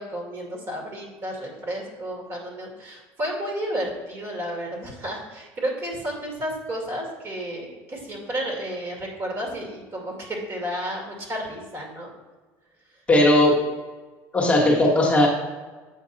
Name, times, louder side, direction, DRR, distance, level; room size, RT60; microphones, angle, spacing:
voice 1, 0.0-12.1, equal, 35° right, 0 dB, 2.2 m, -32 dB
voice 2, 13.1-13.6 14.3-15.3, left 1 dB, 15° left, -2 dB, 1.4 m, -17 dB
7.7 x 4.5 x 4.1 m, 1.3 s
supercardioid pair, 110°, 7 cm